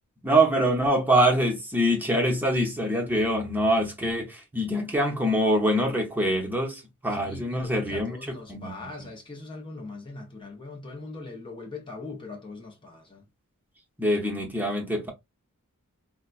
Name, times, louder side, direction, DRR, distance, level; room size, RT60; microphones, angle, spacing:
voice 1, 0.2-8.9 14.0-15.1, right 1 dB, 10° right, 0.8 m, -24 dB
voice 2, 7.1-13.3, left 3 dB, 20° left, 0.7 m, -41 dB
4.3 x 2.2 x 2.4 m
head